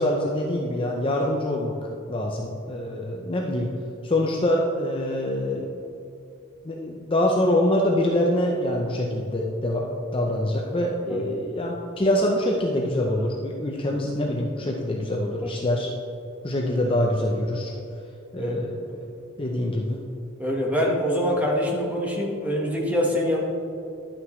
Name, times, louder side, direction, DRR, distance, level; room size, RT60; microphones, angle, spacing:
voice 1, 0.0-1.8 2.1-3.7 4.0-5.8 6.6-15.9 16.4-17.7 18.3-19.0 19.4-20.0, left 1 dB, 25° left, 0 dB, 0.7 m, -25 dB
voice 2, 20.4-23.4, equal, 5° right, -2 dB, 1.3 m, -24 dB
11.5 x 8.8 x 3.2 m, 2.6 s
head